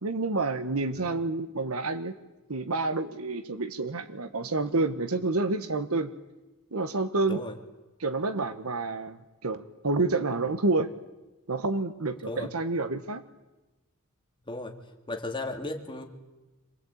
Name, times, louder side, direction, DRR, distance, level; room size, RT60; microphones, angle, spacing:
voice 1, 0.0-2.1 2.5-6.1 6.7-7.4 8.0-10.9 11.5-13.2, right 3 dB, 80° right, 11 dB, 1.3 m, -29 dB
voice 2, 15.1-16.0, left 2 dB, 25° left, 3 dB, 2.6 m, -35 dB
26.5 x 21.0 x 8.6 m, 1.1 s
head